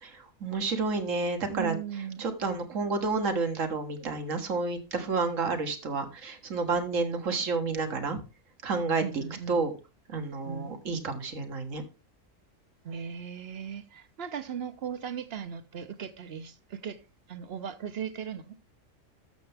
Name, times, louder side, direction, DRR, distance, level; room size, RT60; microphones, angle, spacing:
voice 1, 0.0-1.7 2.2-8.2 8.6-9.7 10.1-11.8, right 4 dB, 70° right, 1.9 m, -30 dB
voice 2, 1.5-2.3 9.0-9.6 10.4-10.7 12.8-17.0 17.3-18.6, right 8 dB, 50° right, 1.1 m, -37 dB
12.5 x 6.9 x 3.5 m
omnidirectional pair, 1.4 m